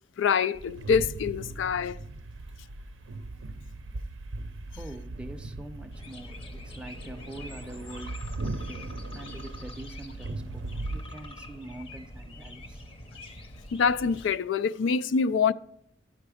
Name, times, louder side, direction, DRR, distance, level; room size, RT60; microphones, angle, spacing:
voice 1, 0.2-2.0 13.7-15.5, left 6 dB, 80° left, 0.4 m, -25 dB
sound 1, 0.5-11.1, right 2 dB, 90° right, 0.5 m, -38 dB
voice 2, 4.7-12.8, right 1 dB, 5° right, 0.5 m, -44 dB
sound 2, 5.9-14.3, left 1 dB, 30° left, 0.7 m, -45 dB
9.7 x 5.9 x 4.9 m
head